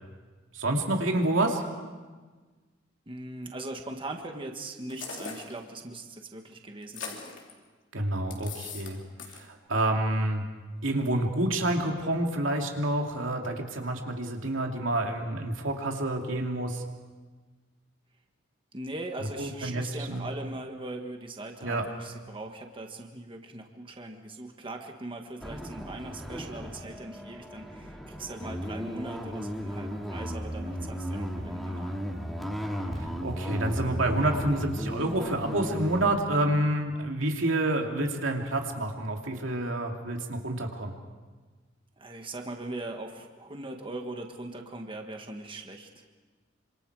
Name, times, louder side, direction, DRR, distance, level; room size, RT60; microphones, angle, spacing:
voice 1, 0.5-1.7 7.9-9.0 9.3-10.4 10.8-16.8 19.2-20.3 21.6-21.8 33.0-40.9, right 1 dB, 90° right, 2 dB, 2.7 m, -28 dB
voice 2, 3.1-7.2 18.7-32.0 42.0-45.9, right 2 dB, 25° right, 3 dB, 1.6 m, -40 dB
sound 1, 4.9-5.6 6.8-7.5 8.3-8.9 9.2-9.4, left 5 dB, 70° left, 3.5 m, -40 dB
sound 2, 25.4-36.2, equal, ahead, 2.4 m, -35 dB
27.0 x 26.0 x 4.9 m, 1.4 s
head